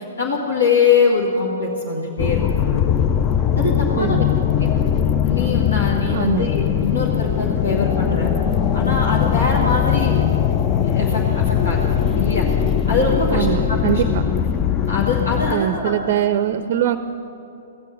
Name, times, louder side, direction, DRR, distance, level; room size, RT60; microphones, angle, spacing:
voice 1, 0.2-2.4 3.6-4.2 4.6-4.7 5.2-8.3 8.7-10.3 10.8-12.5 12.9-14.0 14.9-16.1, left 4 dB, 80° left, -3 dB, 1.7 m, -23 dB
sound 1, 2.2-15.5, left 8 dB, 25° left, 0.5 m, -20 dB
voice 2, 4.0-4.3 6.1-6.5 13.3-14.2 15.5-17.0, right 11 dB, 45° right, 12 dB, 0.5 m, -22 dB
16.0 x 7.5 x 8.3 m, 2.8 s
hypercardioid pair, 120°, 0 cm